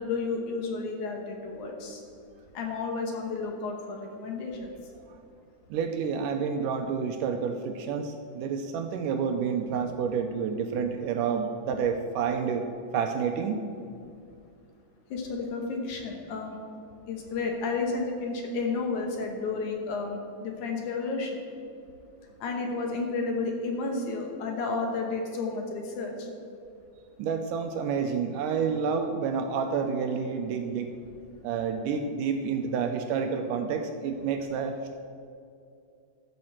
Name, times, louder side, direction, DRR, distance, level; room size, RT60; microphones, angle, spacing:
voice 1, 0.0-2.0 2.5-4.6 15.1-16.6 17.1-21.4 22.4-26.3, left 4 dB, 65° left, 2 dB, 2.4 m, -32 dB
voice 2, 5.7-12.7 12.9-13.6 27.2-30.9 31.4-34.9, right 6 dB, 80° right, 6 dB, 2.0 m, -29 dB
14.0 x 5.3 x 7.3 m, 2.4 s
omnidirectional pair, 4.1 m